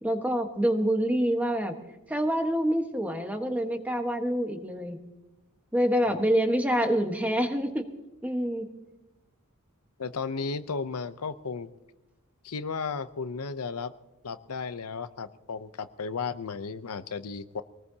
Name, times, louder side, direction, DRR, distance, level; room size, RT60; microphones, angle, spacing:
voice 1, 0.0-1.7 2.1-5.0 5.7-7.9 8.2-8.7, equal, 5° right, 5 dB, 1.3 m, -26 dB
voice 2, 10.0-11.7 12.4-13.9 14.2-17.6, left 5 dB, 90° left, 11 dB, 0.7 m, -34 dB
23.5 x 19.0 x 2.8 m, 0.97 s
head